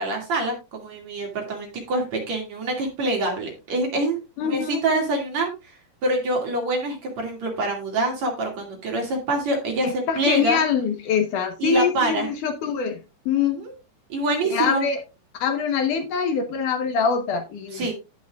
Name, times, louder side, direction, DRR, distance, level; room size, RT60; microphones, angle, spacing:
voice 1, 0.0-4.2 4.4-10.6 11.6-12.3 13.4-13.7 14.1-14.8 17.7-17.9, right 2 dB, 45° right, 3.1 m, -26 dB
voice 2, 4.4-4.8 9.8-13.0 13.3-13.6 14.5-15.0 15.4-17.9, left 6 dB, 65° left, 2.1 m, -24 dB
17.0 x 6.0 x 2.4 m
omnidirectional pair, 4.9 m